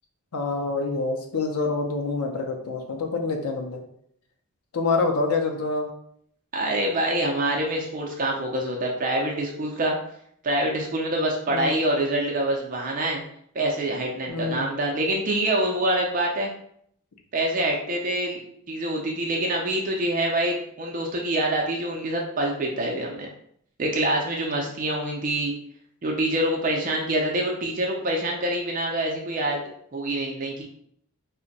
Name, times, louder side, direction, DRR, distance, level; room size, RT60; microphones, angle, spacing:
voice 1, 0.3-3.8 4.7-5.9 11.5-11.8 14.3-14.7, left 3 dB, 90° left, 3 dB, 0.5 m, -26 dB
voice 2, 6.5-10.0 10.4-13.2 13.5-16.5 17.3-18.4 18.7-23.3 23.8-25.5 26.0-29.6 29.9-30.6, right 1 dB, 35° right, 0 dB, 0.4 m, -25 dB
2.5 x 2.1 x 3.8 m, 0.68 s
head